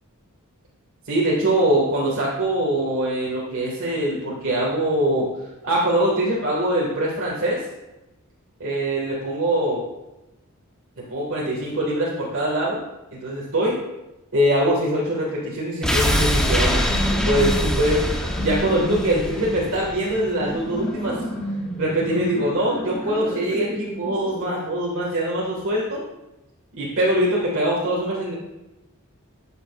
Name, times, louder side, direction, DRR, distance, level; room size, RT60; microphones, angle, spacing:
voice 1, 1.1-5.3 5.6-7.6 8.6-9.8 11.1-12.8 13.2-13.7 14.3-16.9 17.2-18.0 18.4-21.2 21.8-26.0 26.8-28.3, right 1 dB, 65° right, -5 dB, 1.9 m, -23 dB
sound 1, 15.8-20.8 21.1-21.2, equal, 5° left, 0.8 m, -24 dB
sound 2, 16.7-24.5, equal, 25° left, 2.6 m, -31 dB
12.0 x 8.0 x 2.5 m, 0.99 s
head